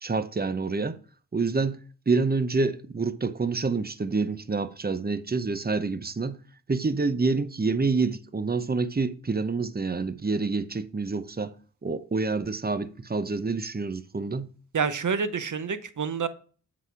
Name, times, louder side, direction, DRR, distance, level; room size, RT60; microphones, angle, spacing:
voice 1, 0.0-1.0 1.3-1.8 2.1-6.4 6.7-11.5 11.8-14.5, right 4 dB, 30° right, 0.7 m, -27 dB
voice 2, 14.7-16.3, right 6 dB, 60° right, 0.9 m, -28 dB
8.0 x 4.1 x 4.6 m
cardioid pair, 50°, 34 cm